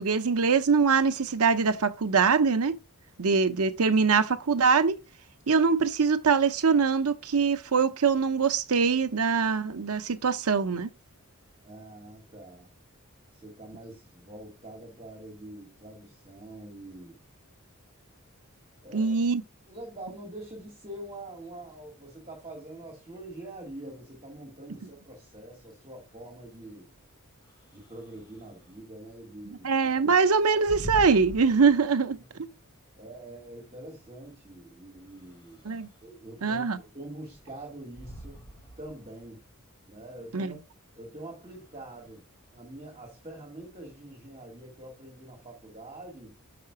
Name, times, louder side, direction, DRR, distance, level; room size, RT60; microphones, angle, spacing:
voice 1, 0.0-2.8 3.2-5.0 5.5-10.9 18.9-19.4 29.6-32.2 35.6-35.9 36.4-36.8 40.3-40.5, right 5 dB, 75° right, 0.7 m, -23 dB
voice 2, 11.6-12.7 13.3-17.2 18.8-19.2 19.7-26.9 27.7-30.2 33.0-35.7 36.0-38.4 38.8-39.4 39.9-40.6 41.0-42.2 42.5-46.4, right 1 dB, 30° right, 2.2 m, -45 dB
sound 1, 24.9-43.8, equal, 20° left, 1.1 m, -46 dB
5.9 x 5.8 x 4.7 m
head